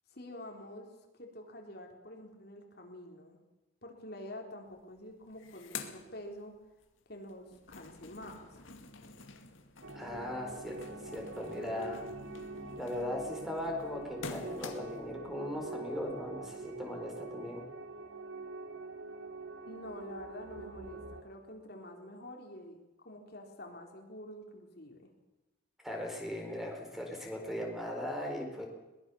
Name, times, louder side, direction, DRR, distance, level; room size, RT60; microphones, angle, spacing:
voice 1, 0.1-3.4 3.8-6.5 7.1-8.6 19.7-25.1, left 1 dB, 50° left, 2 dB, 3.7 m, -47 dB
sound 1, 4.7-4.8 5.1-6.9 7.2-15.1, left 4 dB, 70° left, 2.3 m, -48 dB
sound 2, 9.8-21.2, right 3 dB, 90° right, 2.4 m, -45 dB
voice 2, 9.9-12.1 12.8-17.6 25.8-28.7, left 1 dB, ahead, 2 dB, 4.1 m, -38 dB
22.5 x 20.0 x 7.0 m, 1.0 s
head